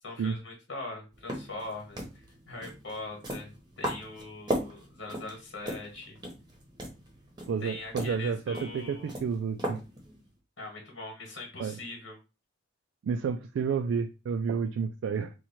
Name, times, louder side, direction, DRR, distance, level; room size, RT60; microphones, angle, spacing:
voice 1, 0.0-6.2 7.6-9.1 10.6-12.2, left 2 dB, 80° left, 1.3 m, -42 dB
sound 1, 1.1-10.3, equal, 25° right, 0.8 m, -38 dB
voice 2, 7.5-9.8 11.6-11.7 13.0-15.3, right 6 dB, 80° right, 0.3 m, -30 dB
3.0 x 2.3 x 4.2 m
head